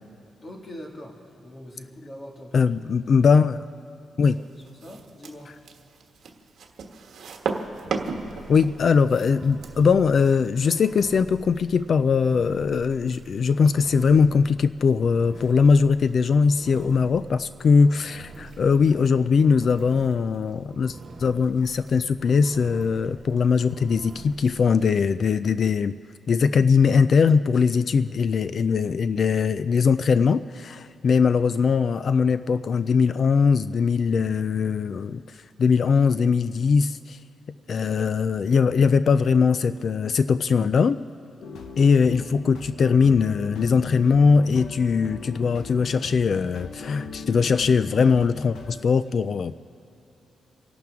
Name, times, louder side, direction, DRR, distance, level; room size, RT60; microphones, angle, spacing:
voice 1, 0.4-2.7 3.1-3.4 3.7-5.6, left 1 dB, 25° left, 0 dB, 1.9 m, -43 dB
voice 2, 2.5-3.6 4.2-4.4 8.5-25.9 26.3-37.2 37.7-41.1 41.8-49.5, left 5 dB, 45° left, 14 dB, 0.3 m, -21 dB
sound 1, 4.6-9.8, right 5 dB, 65° right, 1.3 m, -34 dB
Engine, 7.6-24.9, right 3 dB, 45° right, 2.2 m, -46 dB
sound 2, 41.4-48.8, left 4 dB, 80° left, 1.1 m, -38 dB
28.5 x 12.0 x 3.6 m, 3.0 s
wide cardioid pair, 155°, 0 cm